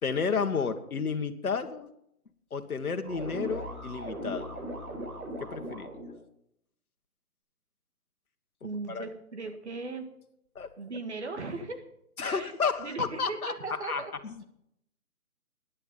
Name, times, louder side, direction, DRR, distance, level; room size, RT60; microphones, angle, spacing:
voice 1, 0.0-1.9 2.5-4.5 5.4-5.9 8.9-9.0 10.5-10.7 12.2-13.5 13.8-14.4, left 5 dB, 65° left, 7 dB, 1.6 m, -31 dB
sound 1, 3.0-6.2, equal, 65° right, 6.0 m, -38 dB
voice 2, 8.6-10.0 10.8-11.8 12.2-12.5 12.8-14.1, right 3 dB, 45° right, 6 dB, 2.0 m, -38 dB
14.5 x 10.5 x 5.5 m, 0.75 s
hypercardioid pair, 165°, 46 cm